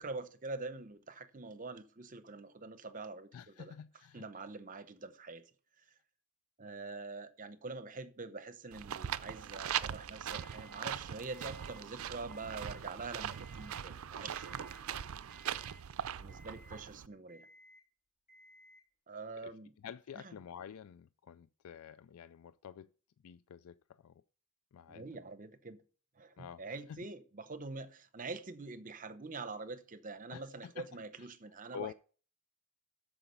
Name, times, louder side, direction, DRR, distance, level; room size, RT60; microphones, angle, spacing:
voice 1, 0.0-3.3 3.6-3.7 4.1-5.5 6.6-14.6 14.9-15.1 16.2-17.5 19.1-19.7 20.2-20.3 24.9-25.8 26.2-31.9, right 3 dB, 40° right, 0.8 m, -45 dB
voice 2, 3.3-4.4 19.4-22.9 23.2-24.1 24.7-25.1 26.4-27.0 30.3-30.9 31.2-31.3 31.7-31.9, left 8 dB, 80° left, 0.4 m, -49 dB
sound 1, 8.7-17.1, right 9 dB, 70° right, 0.4 m, -41 dB
Alarm, 10.3-10.8 11.3-11.8 12.2-12.8 13.3-13.8 14.3-14.8 15.3-15.8 16.3-16.8 17.3-17.8 18.3-18.8, left 1 dB, 35° left, 3.5 m, -60 dB
13.0 x 5.0 x 5.5 m
head